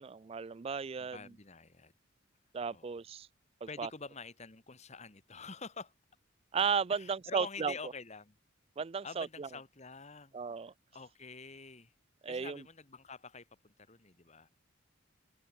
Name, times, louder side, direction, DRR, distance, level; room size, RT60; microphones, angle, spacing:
voice 1, 0.0-1.3 2.5-3.3 3.8-3.9 6.5-7.9 8.8-9.5 10.3-10.7 12.2-12.6, right 6 dB, 30° right, 0.3 m, -35 dB
voice 2, 1.0-1.9 2.7-2.9 3.7-5.9 6.9-8.3 9.0-10.4 10.9-11.9 12.3-14.5, left 4 dB, 35° left, 1.8 m, -47 dB
head